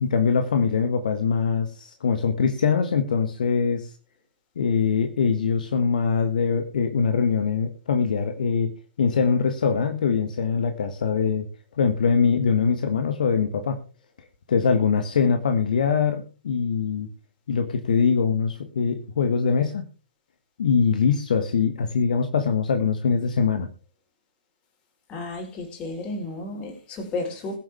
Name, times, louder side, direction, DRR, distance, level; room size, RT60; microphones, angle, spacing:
voice 1, 0.0-3.9 4.5-8.7 9.0-11.5 11.8-13.8 14.5-17.1 17.5-19.9 20.6-23.7, left 5 dB, 55° left, 7 dB, 1.5 m, -23 dB
voice 2, 25.1-27.6, left 2 dB, 20° left, 3 dB, 4.5 m, -32 dB
22.0 x 7.5 x 3.6 m, 0.36 s
figure-of-eight pair, 125°, 5 cm